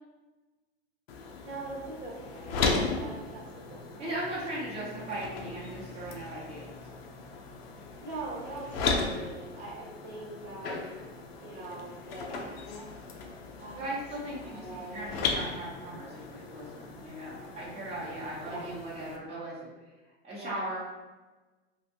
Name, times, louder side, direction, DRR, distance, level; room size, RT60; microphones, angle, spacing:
sound 1, 1.1-19.2, left 4 dB, 65° left, 0.6 m, -37 dB
voice 1, 1.4-4.1 8.0-11.1 11.4-12.6 13.6-13.8 14.2-15.1 18.5-18.7 20.3-20.7, right 2 dB, 45° right, -4 dB, 1.2 m, -42 dB
voice 2, 4.0-6.8 13.7-19.7 20.2-20.8, right 1 dB, 20° right, -7 dB, 1.0 m, -38 dB
3.3 x 2.6 x 2.7 m, 1.2 s
hypercardioid pair, 100°, 33 cm